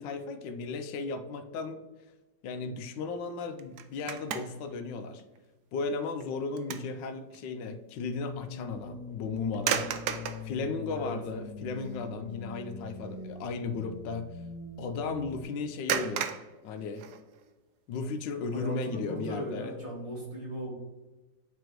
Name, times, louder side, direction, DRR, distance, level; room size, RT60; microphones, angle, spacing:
voice 1, 0.0-1.8 2.4-5.2 5.7-9.8 10.4-14.3 14.8-16.3 16.6-17.0 17.9-19.7, left 4 dB, 90° left, 8 dB, 1.3 m, -35 dB
sound 1, 3.6-4.7 5.2-5.4 5.9-7.0 7.3-7.5 9.5-10.5 11.3-11.4 11.8-12.1 12.4-12.6 15.9-17.5, right 8 dB, 75° right, 1.0 m, -34 dB
sound 2, 8.1-15.4, left 3 dB, 75° left, 1.4 m, -42 dB
voice 2, 18.5-20.7, equal, 35° right, -2 dB, 2.4 m, -37 dB
9.0 x 3.1 x 4.5 m, 1.1 s
omnidirectional pair, 2.0 m